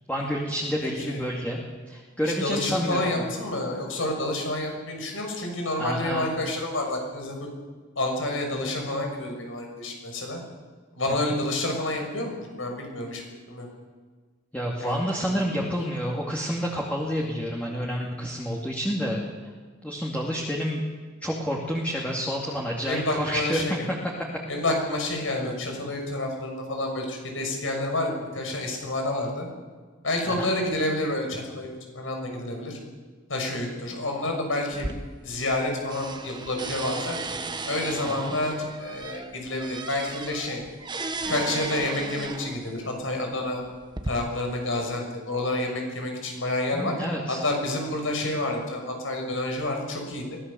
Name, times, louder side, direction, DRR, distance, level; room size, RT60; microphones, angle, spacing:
voice 1, 0.1-1.6 1.9-3.2 5.8-6.3 11.1-11.3 14.5-19.2 19.8-20.8 21.2-23.8 30.3-30.5 38.0-38.4 46.7-47.4, equal, 10° left, -2 dB, 2.5 m, -29 dB
voice 2, 2.2-7.5 7.9-10.4 10.9-13.7 14.8-15.7 22.9-23.8 24.5-29.5 30.0-32.8 33.3-34.9 35.2-37.2 37.6-40.6 41.3-43.6 44.1-46.9 47.3-50.4, left 1 dB, 85° left, 2 dB, 6.4 m, -29 dB
sound 1, 34.7-35.6 35.9-42.7 43.5-44.1, right 3 dB, 25° right, 1.2 m, -35 dB
23.0 x 17.5 x 7.1 m, 1.4 s
head